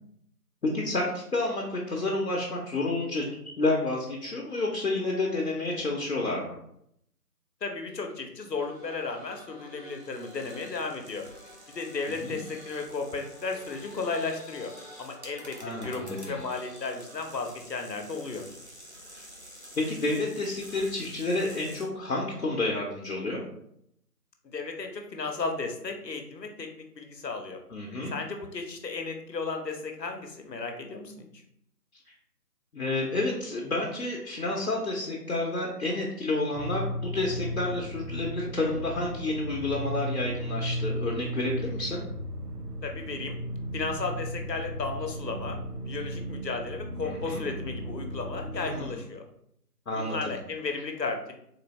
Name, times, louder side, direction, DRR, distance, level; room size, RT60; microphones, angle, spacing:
voice 1, 0.6-3.2 3.6-6.6 12.1-12.4 15.6-16.3 19.8-23.4 27.7-28.1 32.7-42.0 47.0-47.4 48.6-48.9 49.9-50.4, left 2 dB, 65° left, -2 dB, 0.8 m, -30 dB
voice 2, 7.6-11.2 11.7-14.7 15.0-18.5 24.4-27.6 28.1-31.2 42.8-43.4 43.7-49.2 49.9-51.3, left 4 dB, 90° left, 3 dB, 0.9 m, -34 dB
sound 1, 8.5-17.2, equal, ahead, 0.6 m, -50 dB
sound 2, 9.8-21.8, equal, 45° right, 0.6 m, -50 dB
sound 3, 36.5-48.8, equal, 70° right, 0.9 m, -35 dB
4.0 x 2.6 x 3.1 m, 0.73 s
figure-of-eight pair, 180°, 48 cm